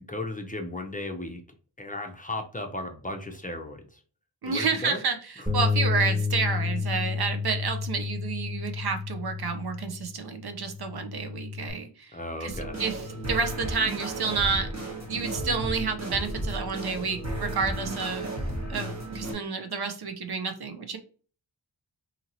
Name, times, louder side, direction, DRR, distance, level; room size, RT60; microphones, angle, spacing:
voice 1, 0.0-1.4 1.8-4.0 4.4-5.0 12.1-12.7, left 1 dB, 20° left, 3 dB, 0.5 m, -35 dB
voice 2, 4.4-5.2 5.5-12.5 12.8-13.0 13.3-14.7 15.1-18.3 18.7-21.0, right 5 dB, 60° right, 7 dB, 0.6 m, -30 dB
Bass guitar, 5.5-11.7, left 5 dB, 5° right, 1.3 m, -30 dB
sound 1, 12.5-19.3, right 1 dB, 35° right, 1.2 m, -33 dB
2.8 x 2.8 x 2.6 m, 0.40 s
wide cardioid pair, 55°, 44 cm